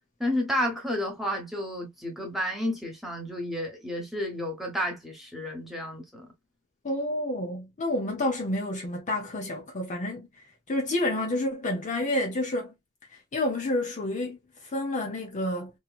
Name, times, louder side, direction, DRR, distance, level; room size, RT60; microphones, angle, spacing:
voice 1, 0.2-6.3, left 1 dB, ahead, 1.0 m, -31 dB
voice 2, 6.8-10.3 10.7-12.7 13.3-14.4 14.7-15.7, left 1 dB, 35° left, 0.6 m, -29 dB
2.9 x 2.8 x 2.3 m
head